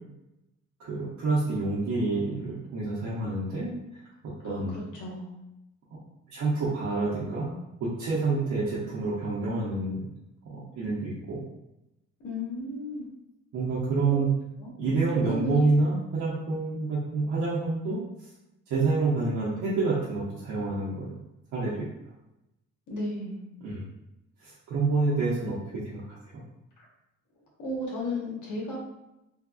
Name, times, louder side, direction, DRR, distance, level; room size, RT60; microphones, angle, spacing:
voice 1, 0.8-3.7 4.2-4.7 6.3-7.5 7.8-10.1 10.5-11.4 13.5-14.3 14.8-18.0 18.7-21.1 21.5-21.9 23.6-23.8 24.4-25.6 25.8-26.0, right 3 dB, 75° right, -8 dB, 0.9 m, -28 dB
voice 2, 4.4-5.4 12.2-13.1 14.0-14.2 14.6-14.7 15.2-15.8 22.9-23.4 27.6-28.8, left 1 dB, 75° left, -3 dB, 1.2 m, -34 dB
3.4 x 2.3 x 2.4 m, 0.91 s
cardioid pair, 90°, 30 cm